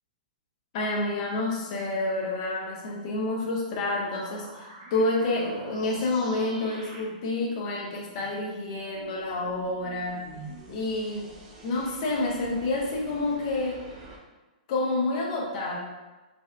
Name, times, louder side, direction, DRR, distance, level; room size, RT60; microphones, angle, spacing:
voice 1, 0.7-10.2 10.7-11.3 11.6-13.8 14.7-15.8, left 2 dB, 45° left, -2 dB, 0.6 m, -29 dB
sound 1, 3.7-14.2, right 2 dB, 45° right, 0.6 m, -46 dB
3.2 x 2.7 x 2.4 m, 1.2 s
hypercardioid pair, 150°, 5 cm